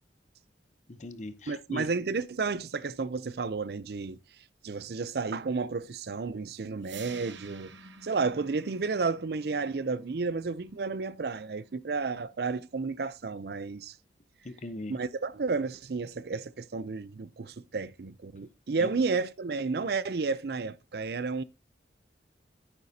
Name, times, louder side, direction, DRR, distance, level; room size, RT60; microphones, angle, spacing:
voice 1, 0.9-1.9 14.4-15.0 18.8-18.9, left 2 dB, 40° left, 0.7 m, -39 dB
voice 2, 1.5-4.2 4.6-7.7 8.0-13.9 14.9-21.4, right 4 dB, 60° right, 0.5 m, -32 dB
sound 1, 6.8-12.8, right 4 dB, 85° right, 1.2 m, -51 dB
10.5 x 8.8 x 2.7 m
head